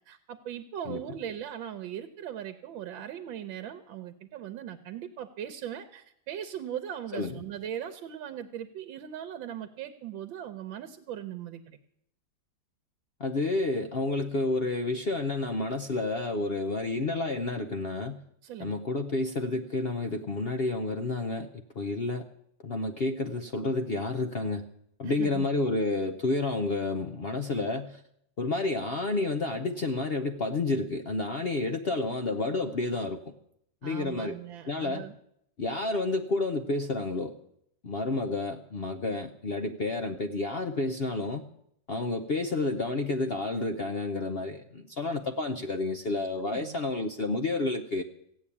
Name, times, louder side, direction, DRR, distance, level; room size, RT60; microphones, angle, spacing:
voice 1, 0.1-11.8 18.4-18.8 25.0-25.5 33.8-35.1 46.4-46.8, right 10 dB, 90° right, 10 dB, 1.5 m, -39 dB
voice 2, 13.2-18.2 18.6-21.5 21.7-22.2 22.6-24.7 25.0-28.0 28.4-33.3 33.8-34.4 34.6-35.1 35.6-37.3 37.8-41.4 41.9-48.0, left 2 dB, 70° left, 6 dB, 0.5 m, -30 dB
16.0 x 8.5 x 8.5 m, 0.74 s
omnidirectional pair, 2.0 m